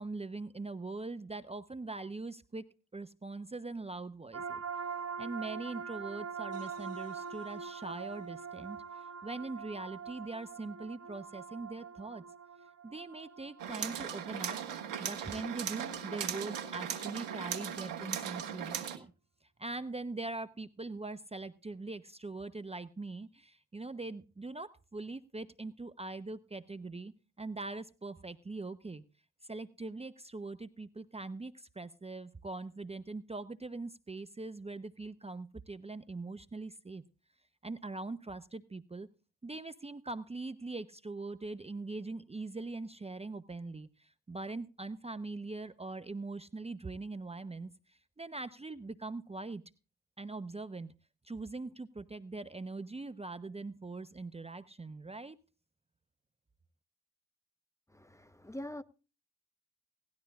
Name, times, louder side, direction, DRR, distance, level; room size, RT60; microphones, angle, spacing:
voice 1, 0.0-2.7 2.9-4.6 5.2-12.2 12.8-14.6 15.0-19.1 19.6-29.0 29.4-37.0 37.6-39.1 39.4-49.6 50.2-50.9 51.2-55.4, right 3 dB, 15° right, 0.9 m, -42 dB
sound 1, 4.3-15.7, right 6 dB, 45° right, 1.6 m, -44 dB
sound 2, 13.6-19.0, right 9 dB, 90° right, 1.7 m, -38 dB
voice 2, 57.9-58.8, left 1 dB, 10° left, 1.0 m, -44 dB
18.0 x 12.5 x 2.4 m
hypercardioid pair, 50°, 37 cm